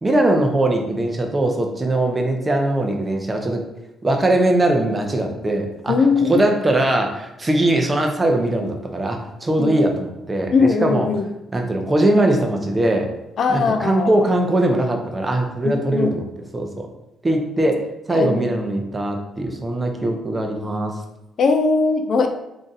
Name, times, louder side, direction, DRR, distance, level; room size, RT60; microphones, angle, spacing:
voice 1, 0.0-3.6 4.0-5.9 6.2-11.1 11.5-13.1 13.5-16.2 16.5-16.9 17.2-20.9, right 1 dB, 20° right, 2 dB, 0.5 m, -20 dB
voice 2, 5.9-6.5 9.6-9.7 10.5-11.3 13.4-14.1 15.6-16.2 18.1-18.4 21.4-22.3, left 4 dB, 60° left, 6 dB, 0.3 m, -19 dB
2.6 x 2.4 x 3.9 m, 0.92 s
cardioid pair, 90°, 0 cm